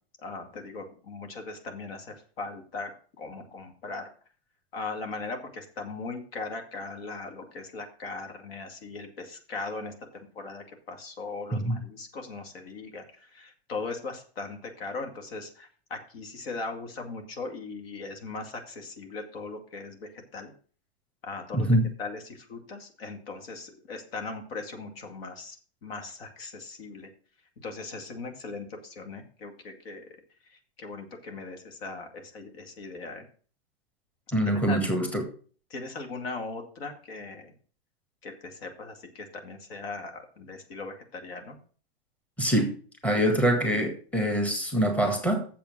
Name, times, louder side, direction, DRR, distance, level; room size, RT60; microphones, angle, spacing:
voice 1, 0.2-2.9 3.2-4.1 4.7-13.0 13.3-20.5 21.2-21.7 22.0-25.6 25.8-27.1 27.6-30.1 30.8-33.2 34.5-34.8 35.7-37.5 38.2-41.6, left 3 dB, 65° left, 2.4 m, -39 dB
voice 2, 11.5-11.8 21.5-21.9 34.3-35.2 42.4-42.7 43.0-45.5, right 1 dB, 5° left, 1.8 m, -24 dB
7.3 x 7.2 x 6.0 m
hypercardioid pair, 110°, 32 cm